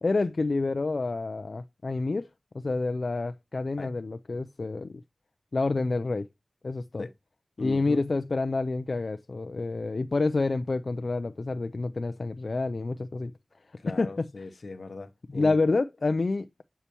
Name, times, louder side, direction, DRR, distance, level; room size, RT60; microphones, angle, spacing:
voice 1, 0.0-2.3 2.5-5.0 5.5-6.3 6.6-7.1 7.6-13.3 13.9-14.3 15.3-16.6, left 3 dB, 70° left, 0.4 m, -28 dB
voice 2, 7.6-8.0 13.8-15.6, left 3 dB, 85° left, 0.8 m, -38 dB
8.1 x 5.6 x 2.9 m
wide cardioid pair, 65°, 0 cm